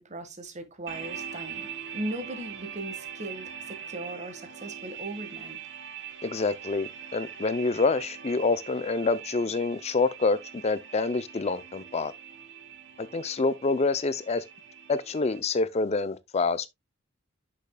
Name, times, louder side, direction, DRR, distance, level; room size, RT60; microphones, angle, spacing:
voice 1, 0.0-1.7 1.9-5.6, right 1 dB, 35° right, 1.5 m, -38 dB
sound 1, 0.9-15.4, right 8 dB, 60° right, 2.3 m, -42 dB
voice 2, 6.2-10.4 10.6-12.1 13.1-14.4 14.9-16.7, left 3 dB, 35° left, 0.5 m, -27 dB
10.5 x 6.6 x 2.2 m
head